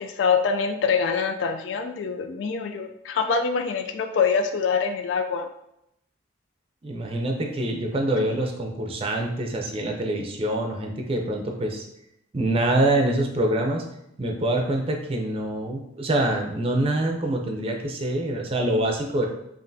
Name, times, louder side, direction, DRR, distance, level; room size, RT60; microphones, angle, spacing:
voice 1, 0.0-5.5, left 5 dB, 85° left, 5 dB, 0.4 m, -25 dB
voice 2, 6.8-11.8 12.3-13.8 14.2-19.3, right 1 dB, 30° right, 2 dB, 0.5 m, -25 dB
5.3 x 2.5 x 2.6 m, 0.81 s
head